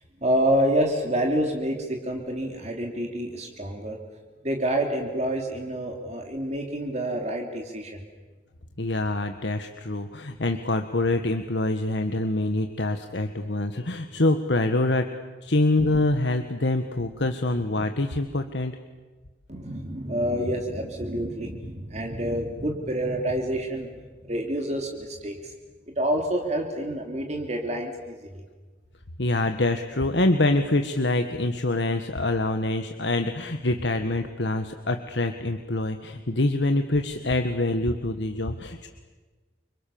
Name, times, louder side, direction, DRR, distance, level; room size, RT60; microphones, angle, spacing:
voice 1, 0.2-4.0 4.4-8.0 19.5-25.5 26.0-28.4, right 1 dB, 40° right, 2 dB, 3.0 m, -28 dB
voice 2, 8.8-15.1 15.4-18.7 29.2-38.9, left 2 dB, 75° left, 7 dB, 1.5 m, -25 dB
30.0 x 25.5 x 7.1 m, 1.3 s
head